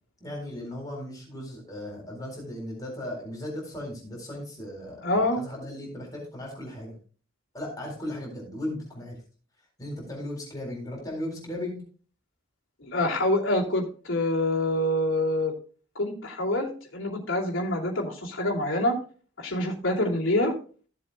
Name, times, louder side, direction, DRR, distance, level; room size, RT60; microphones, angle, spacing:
voice 1, 0.2-7.0 7.5-9.1 9.8-11.8, left 1 dB, 20° left, -2 dB, 4.0 m, -36 dB
voice 2, 5.0-5.4 12.8-15.5 15.9-19.0 19.4-20.5, left 1 dB, 70° left, -5 dB, 2.6 m, -26 dB
16.0 x 7.6 x 2.3 m, 0.40 s
head